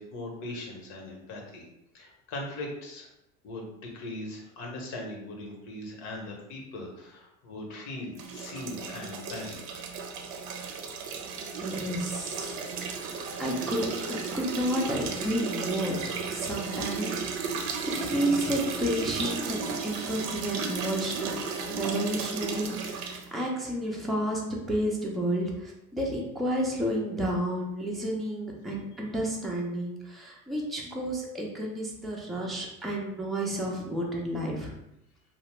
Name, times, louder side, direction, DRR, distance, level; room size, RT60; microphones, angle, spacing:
voice 1, 0.0-1.7 1.9-3.1 3.4-9.9, left 2 dB, 65° left, 0 dB, 0.9 m, -40 dB
sound 1, 8.2-23.3, right 5 dB, 60° right, 0.6 m, -34 dB
voice 2, 11.4-13.1 13.4-17.6 18.0-21.3 21.7-24.4 24.7-34.7, equal, ahead, -3 dB, 0.4 m, -31 dB
2.7 x 2.0 x 3.1 m, 0.86 s
hypercardioid pair, 75°, 45 cm